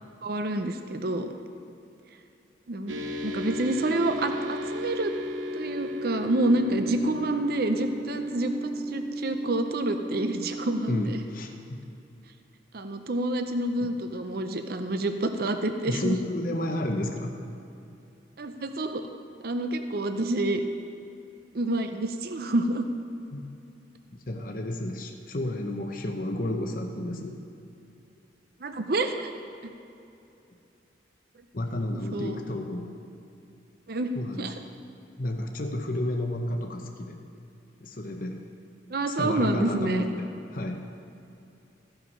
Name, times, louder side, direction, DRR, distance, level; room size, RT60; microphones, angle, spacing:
voice 1, 0.2-1.3 2.7-5.1 5.5-11.2 12.7-16.2 18.4-19.0 19.4-20.6 21.5-22.9 28.6-29.3 29.6-29.7 32.1-32.4 33.9-34.1 34.4-34.5 38.9-40.0, right 2 dB, 55° right, 7 dB, 0.6 m, -28 dB
sound 1, 2.9-11.1, equal, 85° right, 1.0 m, -34 dB
voice 2, 10.9-11.8 15.9-17.4 23.3-23.4 24.1-27.4 31.5-33.0 34.2-34.5 35.2-37.2 37.8-38.4 39.1-40.9, left 1 dB, 45° left, 3 dB, 0.8 m, -31 dB
14.5 x 5.7 x 5.4 m, 2.7 s
head